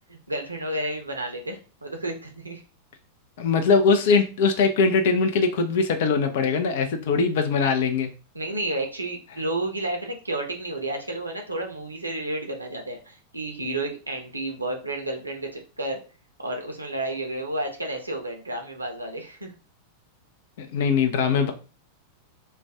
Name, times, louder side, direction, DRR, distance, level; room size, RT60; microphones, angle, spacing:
voice 1, 0.1-2.6 8.3-16.0 16.4-19.5, right 1 dB, 80° right, 3 dB, 0.5 m, -31 dB
voice 2, 3.4-8.1 20.6-21.5, left 5 dB, 55° left, 6 dB, 0.5 m, -21 dB
2.4 x 2.2 x 3.4 m, 0.34 s
figure-of-eight pair, 90°, 0 cm